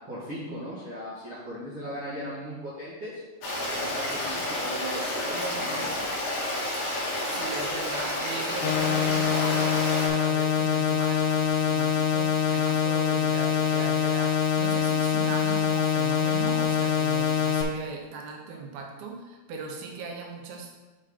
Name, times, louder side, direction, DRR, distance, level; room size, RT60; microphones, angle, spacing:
voice 1, 0.1-3.2 3.6-6.0 18.5-18.6, equal, 45° right, -10 dB, 1.8 m, -38 dB
Stream, 3.4-10.1, left 1 dB, 70° left, 1.2 m, -30 dB
voice 2, 7.3-20.8, right 4 dB, 80° right, 2 dB, 2.8 m, -38 dB
sound 1, 8.6-17.6, left 7 dB, 85° left, 2.7 m, -24 dB
5.6 x 5.5 x 5.1 m, 1.2 s
omnidirectional pair, 4.3 m